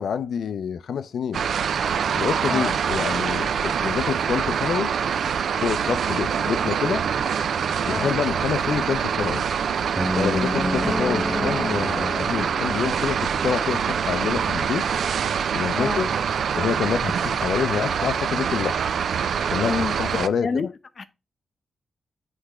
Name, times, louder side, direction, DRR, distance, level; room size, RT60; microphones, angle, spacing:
voice 1, 0.0-1.4 2.2-4.9 5.6-7.0 7.8-9.4 10.2-14.8 15.5-16.1 16.5-18.8 19.5-20.7, left 7 dB, 80° left, 0.4 m, -27 dB
sound 1, 1.3-20.3, right 7 dB, 75° right, 0.4 m, -25 dB
sound 2, 10.0-14.1, equal, 10° right, 0.8 m, -29 dB
voice 2, 15.7-16.1 19.6-20.0 20.4-20.7 21.0-21.1, left 5 dB, 45° left, 0.7 m, -28 dB
8.1 x 3.3 x 4.8 m
wide cardioid pair, 115°, 0 cm